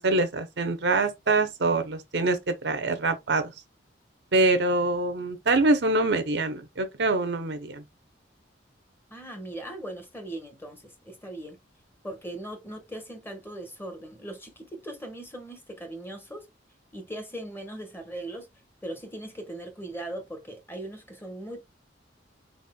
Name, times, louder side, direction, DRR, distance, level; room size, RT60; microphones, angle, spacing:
voice 1, 0.0-3.5 4.3-7.8, right 2 dB, 65° right, 0.8 m, -25 dB
voice 2, 9.1-11.6 12.0-16.5 16.9-18.5 18.8-21.6, right 1 dB, 10° left, 1.2 m, -39 dB
4.2 x 4.1 x 2.3 m
head